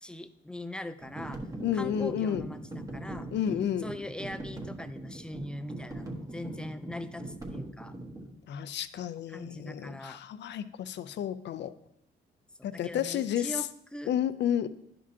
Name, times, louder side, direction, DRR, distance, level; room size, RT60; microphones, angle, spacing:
voice 1, 0.0-1.5 1.7-3.3 3.8-7.9 9.3-10.2 12.6-14.1, left 1 dB, 5° left, 11 dB, 0.4 m, -41 dB
sound 1, 1.0-8.3, right 1 dB, 15° right, 1.3 m, -41 dB
voice 2, 1.6-2.5 3.3-3.9 8.5-11.7 12.6-13.6 14.1-14.7, left 10 dB, 65° left, 13 dB, 0.5 m, -31 dB
10.5 x 5.1 x 2.8 m, 0.77 s
cardioid pair, 90°, 20 cm